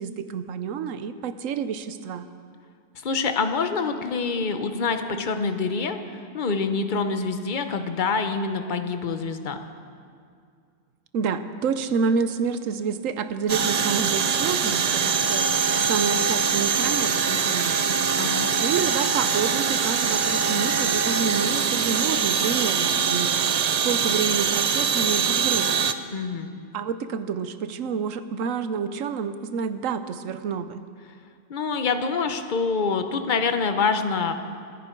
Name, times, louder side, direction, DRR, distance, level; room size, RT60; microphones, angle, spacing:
voice 1, 0.0-2.3 11.1-15.5 15.8-18.0 18.6-23.3 23.7-25.8 26.7-30.8, right 6 dB, 80° right, 11 dB, 1.1 m, -28 dB
voice 2, 3.0-6.0 6.3-9.6 18.1-18.5 26.1-26.5 31.5-34.3, left 4 dB, 40° left, 8 dB, 1.0 m, -26 dB
sound 1, 13.5-25.9, right 6 dB, 55° right, 0.4 m, -23 dB
24.5 x 10.5 x 4.5 m, 2.2 s
omnidirectional pair, 1.3 m